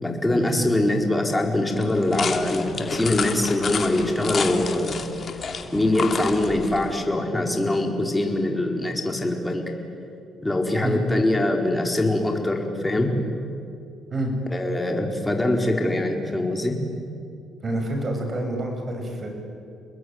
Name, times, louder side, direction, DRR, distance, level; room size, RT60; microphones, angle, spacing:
voice 1, 0.0-5.0 5.7-9.6 10.4-13.1 14.5-16.8, left 1 dB, 10° left, 2 dB, 4.3 m, -23 dB
sound 1, 1.8-6.9, left 5 dB, 45° left, 2.7 m, -31 dB
voice 2, 17.6-19.3, right 1 dB, 40° right, 3 dB, 7.5 m, -28 dB
29.5 x 21.0 x 9.6 m, 2.5 s
cardioid pair, 90°, 0 cm